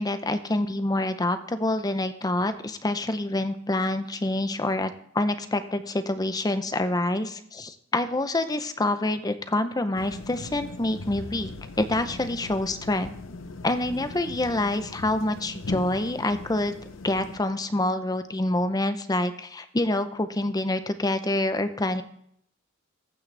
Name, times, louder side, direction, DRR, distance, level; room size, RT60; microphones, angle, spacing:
voice 1, 0.0-11.5 11.8-13.1 13.6-16.8 17.0-22.0, left 2 dB, 20° left, 10 dB, 0.6 m, -27 dB
sound 1, 10.0-17.4, left 2 dB, 70° left, 0.7 m, -39 dB
15.0 x 6.3 x 3.3 m, 0.68 s
head